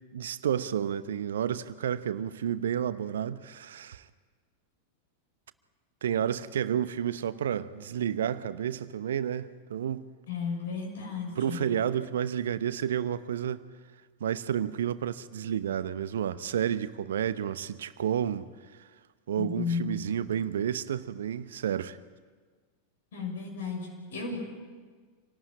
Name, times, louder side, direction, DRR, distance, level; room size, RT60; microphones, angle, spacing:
voice 1, 0.1-4.0 6.0-10.1 11.4-13.6 14.2-18.5 19.3-22.0, right 9 dB, 60° right, 0.9 m, -30 dB
voice 2, 10.3-11.7 19.4-20.0 23.1-24.4, left 5 dB, 60° left, 6.8 m, -34 dB
27.0 x 18.5 x 8.9 m
figure-of-eight pair, 90°, 0 cm